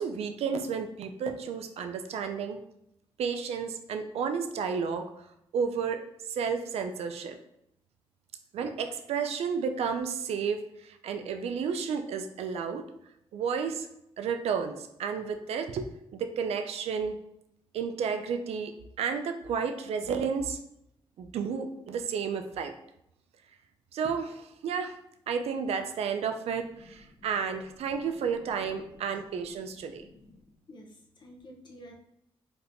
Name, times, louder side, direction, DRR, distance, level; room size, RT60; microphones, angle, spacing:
voice 1, 0.0-2.6 3.2-5.1 5.5-6.0 6.3-7.4 8.5-12.9 13.3-13.9 14.2-17.2 17.7-20.6 21.2-22.7 23.9-24.9 25.3-30.1, right 6 dB, 85° right, 7 dB, 0.4 m, -32 dB
voice 2, 26.8-27.3 28.6-28.7 29.7-30.9 31.2-31.9, equal, 50° left, 1 dB, 0.6 m, -52 dB
3.5 x 2.8 x 2.5 m, 0.78 s
cardioid pair, 115°, 10 cm